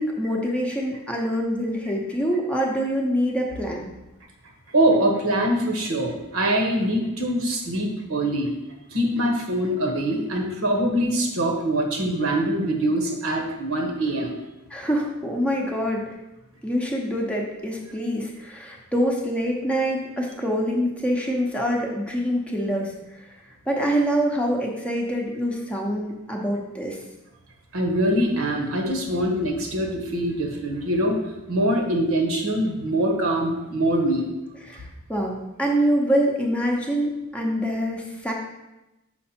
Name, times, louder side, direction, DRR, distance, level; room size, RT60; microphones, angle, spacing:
voice 1, 0.0-3.9 14.7-16.0 16.6-22.9 23.7-27.0 34.5-34.8 35.1-38.3, equal, 5° left, -1 dB, 0.8 m, -25 dB
voice 2, 4.7-8.5 8.9-14.3 27.7-31.2 31.5-34.3, right 1 dB, 65° right, 1 dB, 1.3 m, -23 dB
6.5 x 4.8 x 4.3 m, 0.98 s
head